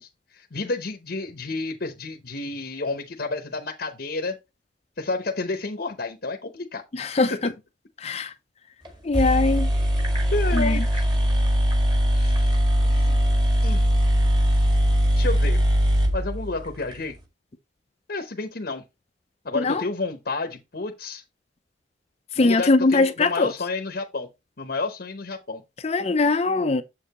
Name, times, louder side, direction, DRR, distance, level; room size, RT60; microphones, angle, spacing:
voice 1, 0.0-4.4 5.0-6.8 7.3-7.5 10.3-11.1 12.1-12.5 12.8-13.2 13.6-13.9 15.1-15.6 16.1-17.1 18.1-18.8 19.4-21.2 22.4-24.3 24.6-25.6, left 3 dB, 55° left, 0.8 m, -30 dB
voice 2, 7.0-7.3 8.0-8.3 9.0-9.7 10.5-10.8 19.6-19.8 22.4-23.5 25.8-26.8, left 3 dB, 35° left, 0.5 m, -21 dB
sound 1, 8.9-9.0 9.1-17.0, equal, 25° right, 1.9 m, -21 dB
7.4 x 6.7 x 3.0 m
head